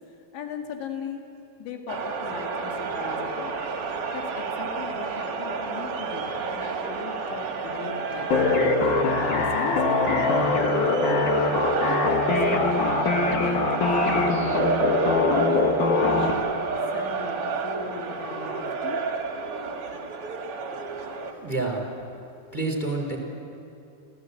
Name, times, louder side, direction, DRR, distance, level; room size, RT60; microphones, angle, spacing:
voice 1, 0.3-1.2 1.6-3.5 4.1-8.6 9.3-11.3 11.8-13.0 13.4-14.7 15.2-15.7 16.0-16.5 16.9-19.0, left 6 dB, 90° left, 3 dB, 4.3 m, -37 dB
sound 1, 1.9-21.3, right 4 dB, 55° right, 1.6 m, -30 dB
sound 2, 8.3-16.3, left 3 dB, 60° left, 2.5 m, -23 dB
voice 2, 21.4-21.8 22.5-23.2, right 3 dB, 10° left, 2 dB, 3.0 m, -28 dB
30.0 x 15.0 x 8.3 m, 2.6 s
omnidirectional pair, 5.1 m